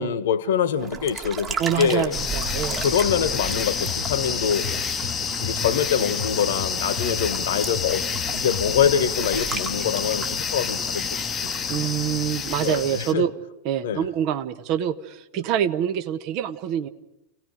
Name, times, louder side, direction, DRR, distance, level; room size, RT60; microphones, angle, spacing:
voice 1, 0.0-2.1 2.8-4.7 5.4-8.1 8.3-11.8 12.6-13.2 13.8-14.0, left 8 dB, 60° left, 1.4 m, -25 dB
sound 1, 0.8-12.8, right 5 dB, 20° right, 1.9 m, -37 dB
voice 2, 1.6-2.8 11.7-13.3 13.6-16.9, right 9 dB, 40° right, 1.3 m, -26 dB
sound 2, 2.1-13.1, left 6 dB, 20° left, 1.0 m, -28 dB
sound 3, 2.5-8.7, left 4 dB, 80° right, 7.0 m, -36 dB
30.0 x 18.0 x 5.0 m
figure-of-eight pair, 90°, 0 cm